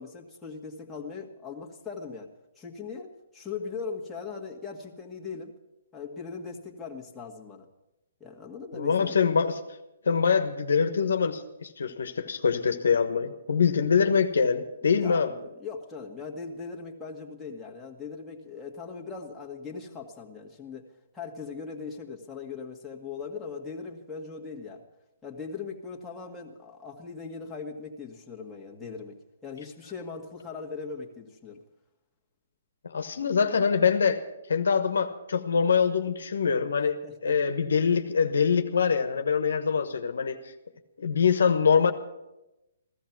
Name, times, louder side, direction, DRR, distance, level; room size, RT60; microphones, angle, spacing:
voice 1, 0.0-2.3 2.6-5.5 5.9-7.7 8.2-9.1 14.8-20.8 21.1-24.8 25.2-29.2 29.4-31.6 37.0-37.4, left 5 dB, 10° left, -3 dB, 1.9 m, -39 dB
voice 2, 8.7-9.6 10.0-15.3 32.8-34.2 34.5-40.4 41.0-41.9, left 6 dB, 75° left, 8 dB, 1.2 m, -24 dB
15.5 x 13.5 x 6.0 m, 0.95 s
hypercardioid pair, 135°, 0 cm